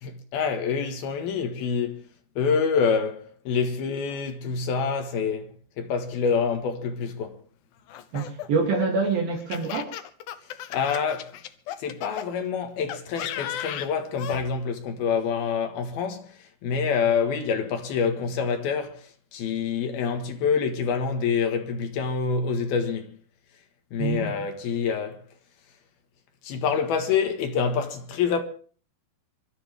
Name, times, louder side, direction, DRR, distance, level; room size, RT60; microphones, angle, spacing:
voice 1, 0.0-2.0 2.4-7.4 10.7-11.4 11.8-19.0 19.3-23.1 23.9-25.2 26.4-28.4, left 6 dB, 70° left, 3.4 m, -26 dB
Laughter, 7.9-12.3 12.9-14.4, left 11 dB, 90° left, 1.8 m, -35 dB
voice 2, 8.1-9.9 24.0-24.3, right 4 dB, 60° right, 4.6 m, -26 dB
26.0 x 13.0 x 3.5 m
omnidirectional pair, 4.8 m